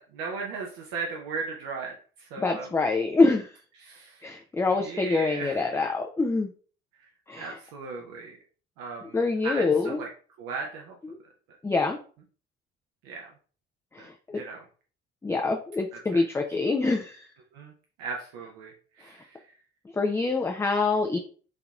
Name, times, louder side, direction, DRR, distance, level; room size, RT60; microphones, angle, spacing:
voice 1, 0.0-2.7 3.8-4.2 4.8-5.6 7.4-8.4 8.8-9.2 9.4-10.1 10.4-10.9 13.0-13.3 14.0-14.1 14.3-14.6 15.9-16.2 17.5-17.7 18.0-18.7 19.0-19.4, right 4 dB, 65° right, 0 dB, 0.7 m, -37 dB
voice 2, 2.4-3.5 4.2-6.5 7.3-7.6 9.0-10.0 11.0-11.2 11.6-12.0 13.9-14.4 15.2-17.3 19.9-21.2, left 3 dB, 10° left, 2 dB, 0.3 m, -25 dB
4.2 x 2.8 x 2.4 m, 0.40 s
figure-of-eight pair, 45°, 33 cm